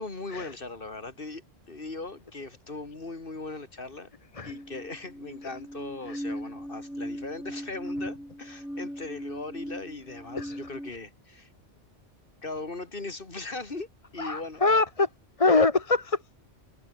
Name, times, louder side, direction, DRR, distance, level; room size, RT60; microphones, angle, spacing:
voice 1, 0.0-4.1 4.4-11.5 12.4-14.6, left 3 dB, 45° left, 2.7 m, -39 dB
sound 1, 4.5-10.9, equal, ahead, 4.4 m, -38 dB
voice 2, 14.2-15.1 15.4-16.2, left 3 dB, 30° left, 1.1 m, -23 dB
omnidirectional pair, 1.2 m